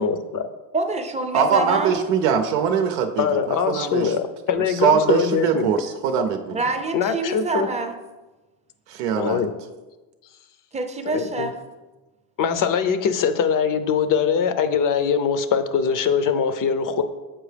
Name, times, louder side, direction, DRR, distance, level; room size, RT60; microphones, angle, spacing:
voice 1, 0.0-0.4 3.2-5.7 6.9-7.7 9.1-9.5 11.1-11.5 12.4-17.0, left 6 dB, 45° left, 10 dB, 0.6 m, -22 dB
voice 2, 0.7-2.1 6.5-8.0 10.7-11.5, right 3 dB, 15° right, 5 dB, 0.5 m, -26 dB
voice 3, 1.3-4.1 4.7-6.6 8.9-9.4, right 7 dB, 90° right, 5 dB, 0.7 m, -22 dB
7.5 x 4.5 x 3.3 m, 1.2 s
supercardioid pair, 100°, 47 cm